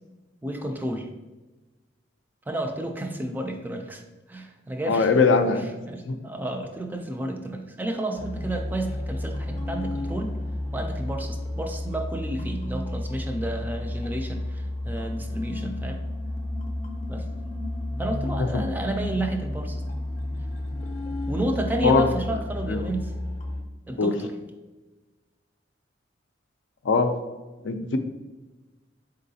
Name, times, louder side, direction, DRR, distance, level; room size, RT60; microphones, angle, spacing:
voice 1, 0.4-1.1 2.5-4.0 4.3-5.1 5.9-10.3 10.7-16.0 17.1-17.3 18.0-19.8 21.3-23.1 23.9-24.3, right 1 dB, 10° right, 4 dB, 0.3 m, -31 dB
voice 2, 4.9-5.8 6.1-6.2 18.5-18.6 21.8-22.1 22.7-22.8 24.0-24.1 26.8-27.1 27.6-28.0, left 4 dB, 80° left, 7 dB, 0.4 m, -21 dB
sound 1, 8.2-23.6, left 1 dB, 35° left, 0.6 m, -32 dB
4.1 x 3.8 x 2.7 m, 1.1 s
head